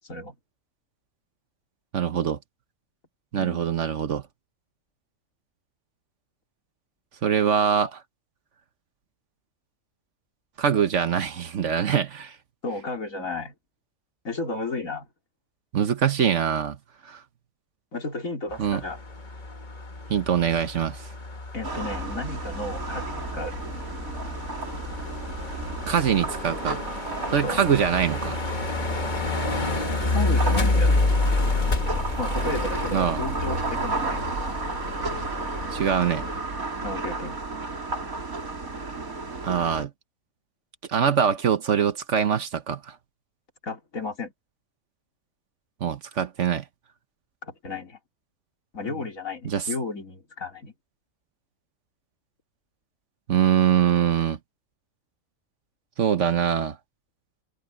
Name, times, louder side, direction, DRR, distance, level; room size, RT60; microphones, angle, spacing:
voice 1, 1.9-2.4 3.3-4.2 7.2-8.0 10.6-12.3 15.7-16.8 17.1-17.2 18.6-18.8 20.1-21.1 25.9-26.8 27.3-28.4 32.9-33.2 35.7-36.2 39.4-39.9 40.9-42.9 45.8-46.6 49.4-49.7 53.3-54.4 56.0-56.8, right 8 dB, 60° right, 1.3 m, -23 dB
voice 2, 12.6-13.5 14.2-15.1 17.9-19.0 21.5-23.5 27.4-27.6 30.1-31.0 32.2-34.4 36.8-37.4 43.6-44.3 47.4-48.0 48.7-50.7, left 2 dB, 70° left, 3.5 m, -33 dB
sound 1, 18.5-36.4, left 2 dB, 35° left, 1.6 m, -29 dB
sound 2, 21.6-39.8, right 3 dB, 80° right, 3.8 m, -33 dB
omnidirectional pair, 1.5 m